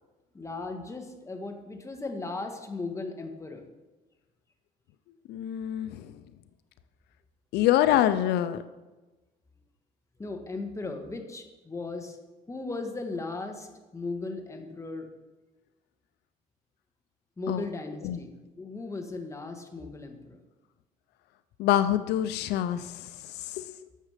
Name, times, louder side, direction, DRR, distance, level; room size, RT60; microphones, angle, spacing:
voice 1, 0.3-3.6 10.2-12.2 12.5-15.1 17.4-20.4, left 3 dB, 15° left, 4 dB, 1.6 m, -37 dB
voice 2, 5.3-6.0 7.5-8.6 17.5-17.6 18.0-18.2 21.6-23.1 23.4-23.6, left 12 dB, 80° left, 12 dB, 0.5 m, -25 dB
12.0 x 7.4 x 5.1 m, 1.1 s
cardioid pair, 110°, 17 cm